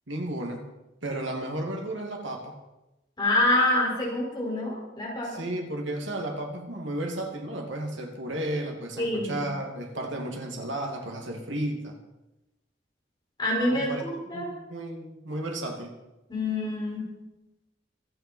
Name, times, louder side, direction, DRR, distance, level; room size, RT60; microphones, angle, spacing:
voice 1, 0.1-0.6 1.0-2.6 5.2-12.0 13.7-14.0 14.3-15.9, right 1 dB, 70° right, 2 dB, 2.5 m, -33 dB
voice 2, 3.2-5.4 9.0-9.5 13.4-14.5 16.3-17.1, left 1 dB, 25° left, -4 dB, 5.7 m, -26 dB
25.5 x 9.3 x 4.6 m, 0.99 s
head